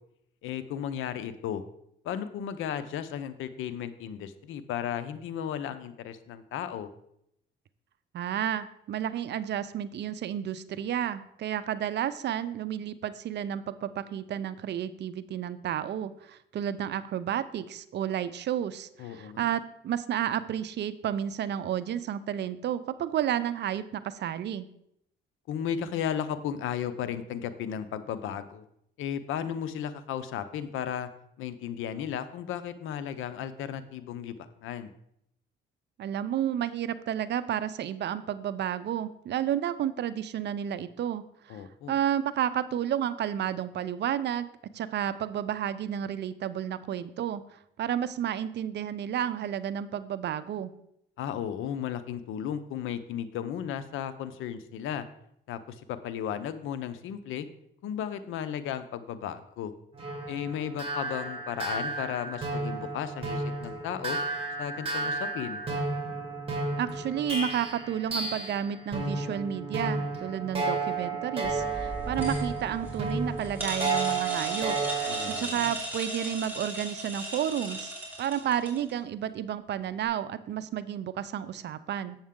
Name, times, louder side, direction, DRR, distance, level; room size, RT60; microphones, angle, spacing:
voice 1, 0.4-1.6 2.0-6.9 19.0-19.5 25.5-28.6 29.0-31.1 31.4-34.9 41.5-42.0 51.2-55.0 55.5-57.5 57.8-59.7 60.3-64.2 64.6-65.6 75.1-75.7, left 9 dB, 85° left, 12 dB, 0.6 m, -35 dB
voice 2, 8.1-24.7 36.0-41.6 41.9-44.5 44.7-47.4 47.8-50.7 66.8-74.8 75.3-82.2, right 10 dB, 60° right, 14 dB, 0.5 m, -31 dB
sound 1, 59.9-68.6 68.9-75.4, right 3 dB, 25° right, 2.2 m, -32 dB
sound 2, 71.4-78.9, right 1 dB, 10° right, 2.7 m, -37 dB
7.4 x 7.1 x 3.7 m, 0.75 s
cardioid pair, 90°, 20 cm